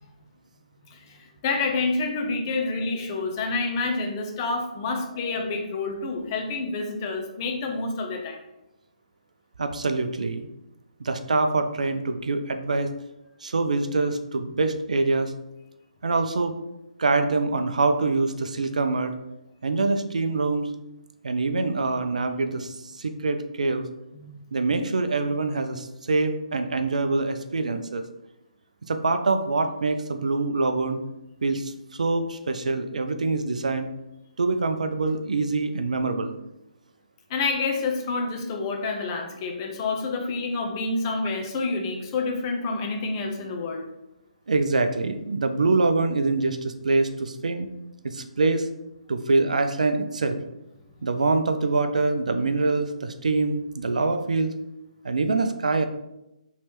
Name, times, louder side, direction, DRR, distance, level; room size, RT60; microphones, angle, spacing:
voice 1, 0.9-8.4 24.1-24.6 37.3-43.9, left 3 dB, 30° left, 2 dB, 0.6 m, -28 dB
voice 2, 9.6-10.5 11.0-12.9 13.4-15.3 16.0-16.5 17.0-19.1 19.6-20.7 21.2-23.9 24.5-28.0 28.9-31.0 31.4-33.9 34.4-36.4 44.5-47.7 48.0-48.7 49.1-50.4 51.0-54.6 55.0-55.9, right 3 dB, 65° right, 7 dB, 0.4 m, -25 dB
4.1 x 3.1 x 3.1 m, 0.90 s
figure-of-eight pair, 135°, 4 cm